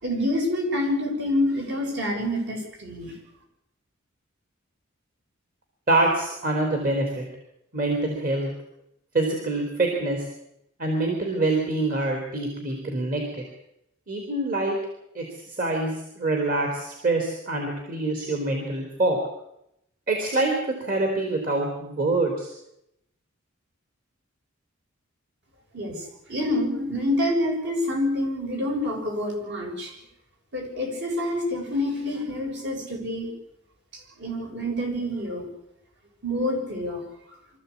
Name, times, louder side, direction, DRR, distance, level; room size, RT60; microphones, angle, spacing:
voice 1, 0.0-3.1 25.7-26.0 26.3-29.9 30.5-33.3 34.2-35.5 36.2-37.0, left 1 dB, 60° right, 1 dB, 7.1 m, -27 dB
voice 2, 5.9-7.3 7.7-8.5 9.1-10.3 10.8-13.4 14.1-14.8 15.1-19.2 20.1-20.5 20.8-22.5, right 2 dB, 45° right, 2 dB, 3.7 m, -25 dB
25.0 x 14.5 x 8.5 m, 0.81 s
head